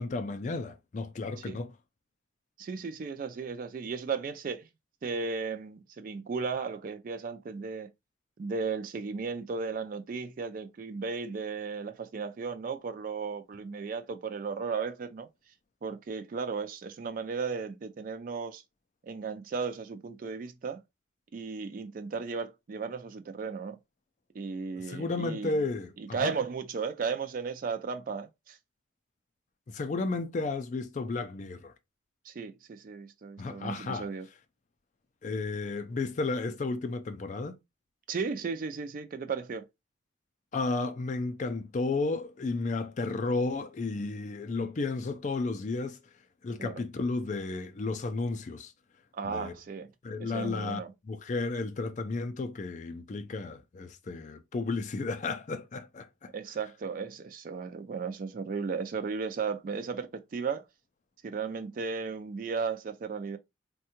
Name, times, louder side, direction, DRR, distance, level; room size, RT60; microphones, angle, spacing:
voice 1, 0.0-1.7 24.8-26.3 29.7-31.7 33.4-34.1 35.2-37.6 40.5-46.0 46.4-48.7 49.2-49.5 50.0-50.8 51.0-56.3, left 3 dB, 40° left, 0.4 m, -33 dB
voice 2, 2.6-4.7 5.0-7.9 8.4-15.3 15.8-18.6 19.0-20.8 21.3-23.8 24.3-25.5 26.0-28.6 32.3-34.3 38.1-39.7 46.6-46.8 49.1-49.9 50.2-50.9 56.3-60.6 61.2-63.4, right 5 dB, 45° right, 0.3 m, -35 dB
3.5 x 2.2 x 2.8 m
head